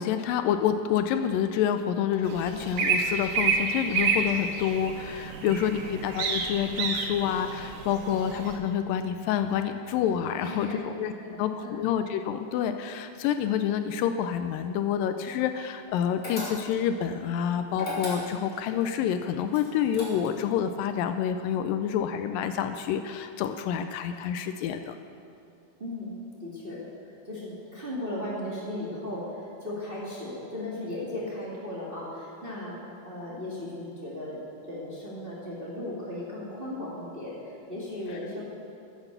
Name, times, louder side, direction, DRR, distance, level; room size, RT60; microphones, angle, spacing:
voice 1, 0.0-11.1 11.4-24.9, left 9 dB, 80° left, 8 dB, 2.2 m, -28 dB
sound 1, 2.3-8.6, right 5 dB, 85° right, 2.9 m, -29 dB
voice 2, 10.4-10.9 11.2-11.9 25.8-34.4 34.7-38.4, left 1 dB, 20° right, -6 dB, 1.8 m, -37 dB
sound 2, 16.2-16.9 17.7-18.6 19.5-20.5, left 2 dB, 25° left, 3.0 m, -36 dB
14.5 x 8.1 x 6.8 m, 2.6 s
omnidirectional pair, 4.1 m